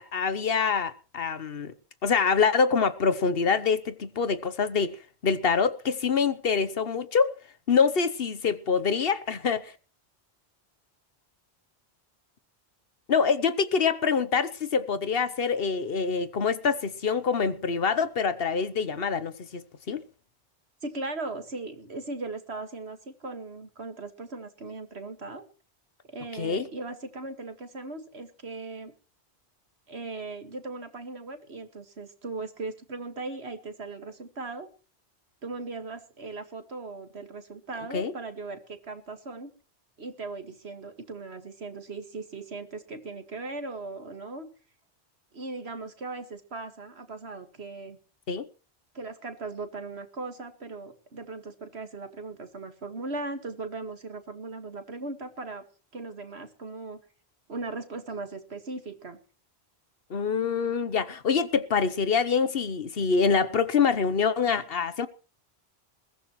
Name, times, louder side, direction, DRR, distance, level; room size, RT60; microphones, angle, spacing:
voice 1, 0.0-1.7 2.0-5.0 5.2-7.3 7.7-9.7 13.1-19.6 19.9-20.0 26.4-26.7 37.9-38.1 48.3-48.5 60.1-65.1, left 5 dB, 65° left, 1.2 m, -25 dB
voice 2, 20.8-25.4 26.1-28.9 29.9-34.7 35.4-39.5 40.0-44.5 45.3-48.0 48.9-55.6 55.9-57.0 57.5-59.2, right 3 dB, 75° right, 2.2 m, -38 dB
21.5 x 15.0 x 3.1 m
omnidirectional pair, 1.1 m